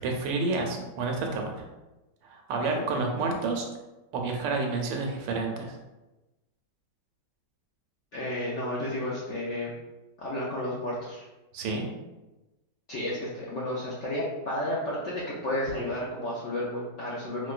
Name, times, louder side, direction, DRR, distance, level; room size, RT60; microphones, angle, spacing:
voice 1, 0.0-1.5 2.2-3.7 4.1-5.7 11.5-11.9, right 3 dB, 90° right, 2 dB, 1.3 m, -29 dB
voice 2, 8.1-9.7 10.2-11.3 12.9-17.5, left 1 dB, 75° left, -6 dB, 0.6 m, -32 dB
4.3 x 2.1 x 2.4 m, 1.1 s
omnidirectional pair, 1.9 m